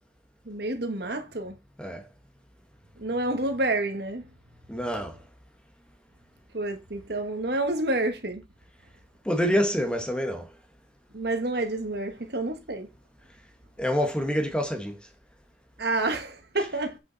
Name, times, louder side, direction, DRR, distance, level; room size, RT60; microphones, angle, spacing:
voice 1, 0.4-1.6 3.0-4.3 6.5-8.4 11.1-12.9 15.8-17.0, right 2 dB, 60° right, 1.5 m, -29 dB
voice 2, 4.7-5.2 9.2-10.5 13.8-15.0, equal, 5° left, 1.1 m, -26 dB
8.2 x 5.6 x 4.0 m
head